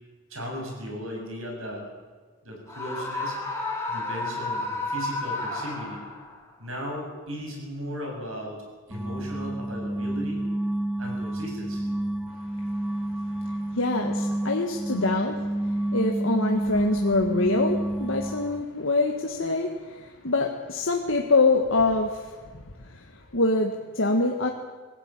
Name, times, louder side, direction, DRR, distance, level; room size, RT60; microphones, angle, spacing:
voice 1, 0.3-1.9 2.4-3.4 3.9-6.0 6.6-10.4 11.0-11.9, equal, 70° right, 0 dB, 7.6 m, -36 dB
Screaming, 2.7-6.4, left 2 dB, 15° left, 3.0 m, -31 dB
sound 1, 8.9-18.6, right 1 dB, 5° right, 0.5 m, -29 dB
voice 2, 12.8-24.5, left 3 dB, 65° left, 2 dB, 1.6 m, -26 dB
20.5 x 16.5 x 9.0 m, 1.4 s
head